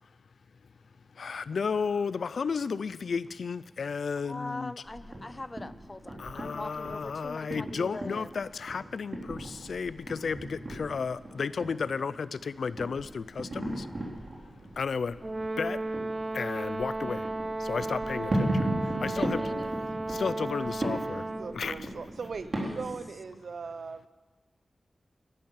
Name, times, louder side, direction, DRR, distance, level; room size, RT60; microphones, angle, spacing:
voice 1, 1.2-4.7 6.2-13.9 14.8-15.2 15.6-15.8 16.3-17.2 17.6-18.7 19.0-19.5 20.1-21.2 21.5-21.9, left 5 dB, 85° left, 17 dB, 0.5 m, -33 dB
voice 2, 4.3-8.3 19.2-19.7 22.6-22.8, left 2 dB, 30° left, 16 dB, 0.5 m, -41 dB
sound 1, 4.8-23.0, right 1 dB, 45° right, 3.6 m, -37 dB
Brass instrument, 15.2-21.6, right 2 dB, 25° right, 0.4 m, -34 dB
voice 3, 21.4-24.1, right 5 dB, 80° right, 12 dB, 0.7 m, -39 dB
12.0 x 11.5 x 8.9 m, 1.3 s
wide cardioid pair, 80°, 0 cm